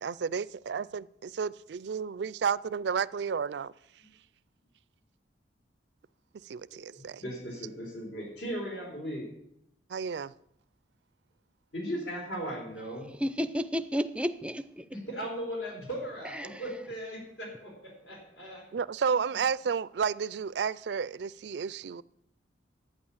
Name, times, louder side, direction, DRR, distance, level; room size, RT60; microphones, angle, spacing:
voice 1, 0.0-3.7 6.4-7.2 9.9-10.3 18.7-22.0, right 6 dB, 65° right, 0.4 m, -32 dB
voice 2, 6.9-9.3 11.7-13.1 14.9-18.7, equal, 75° left, 3.8 m, -38 dB
voice 3, 13.2-14.9 16.3-16.6, equal, 5° right, 0.5 m, -32 dB
11.0 x 9.3 x 7.2 m
head